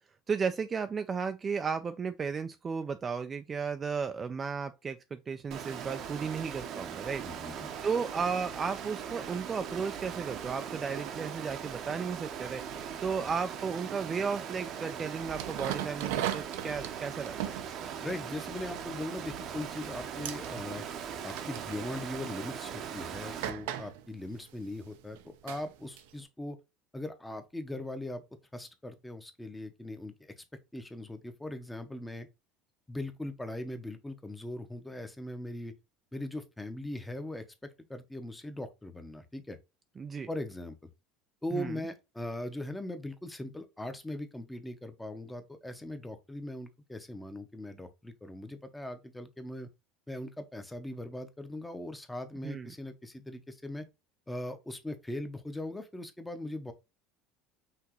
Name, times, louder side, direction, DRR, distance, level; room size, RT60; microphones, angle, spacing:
voice 1, 0.3-7.2 7.8-12.6 13.0-17.4 40.0-40.3 41.5-41.8 52.4-52.7, right 5 dB, 25° right, 0.3 m, -34 dB
Water, 5.5-23.5, right 8 dB, 50° right, 0.7 m, -40 dB
voice 2, 7.2-7.7 18.0-20.8 21.2-26.6 26.9-28.2 28.5-30.4 30.7-32.3 32.9-35.7 36.1-39.6 40.3-40.7 41.4-49.7 50.1-53.9 54.3-56.7, left 1 dB, 5° left, 0.7 m, -40 dB
sound 1, 15.3-19.5 19.8-20.0 20.3-20.5 21.3-21.9 22.6-22.7 23.4-26.2, right 12 dB, 90° right, 0.5 m, -38 dB
5.8 x 2.9 x 2.9 m
cardioid pair, 140°, 0 cm